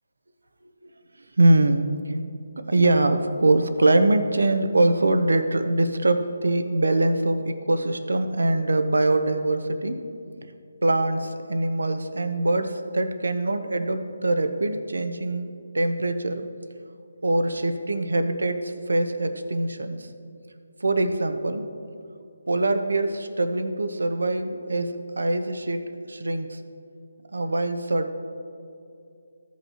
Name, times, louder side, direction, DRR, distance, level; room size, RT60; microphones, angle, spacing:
voice 1, 1.4-2.2 2.6-10.0 10.8-15.5 15.7-16.5 17.2-20.1 20.8-21.6 22.5-25.8 26.1-26.6 27.3-28.1, right 2 dB, 80° right, 8 dB, 0.8 m, -23 dB
15.0 x 5.6 x 3.0 m, 2.5 s
figure-of-eight pair, 155°, 0 cm